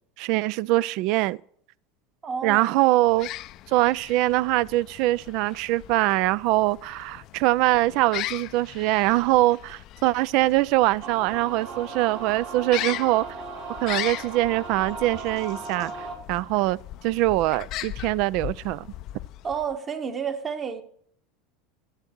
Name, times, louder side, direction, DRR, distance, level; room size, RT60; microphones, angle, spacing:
voice 1, 0.2-1.4 2.4-3.3 3.7-13.2 13.8-16.8 17.0-18.9, right 17 dB, 60° right, 0.3 m, -23 dB
voice 2, 2.2-2.8 19.4-20.8, right 6 dB, 35° right, 1.3 m, -30 dB
sound 1, 3.0-19.8, left 15 dB, 55° left, 0.4 m, -39 dB
sound 2, 11.0-16.2, right 4 dB, 80° right, 3.4 m, -37 dB
12.0 x 8.0 x 4.4 m
hypercardioid pair, 85°, 0 cm